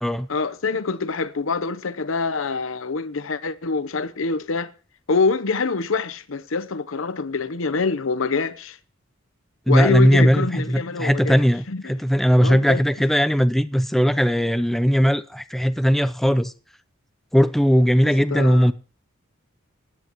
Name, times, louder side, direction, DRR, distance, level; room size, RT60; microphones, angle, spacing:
voice 1, 0.3-4.7 5.1-8.8 9.7-11.4 11.7-12.0 12.4-12.8 18.3-18.7, left 4 dB, 75° left, 0.8 m, -25 dB
voice 2, 9.7-16.5 17.3-18.7, equal, ahead, 0.4 m, -18 dB
16.5 x 10.5 x 3.0 m
head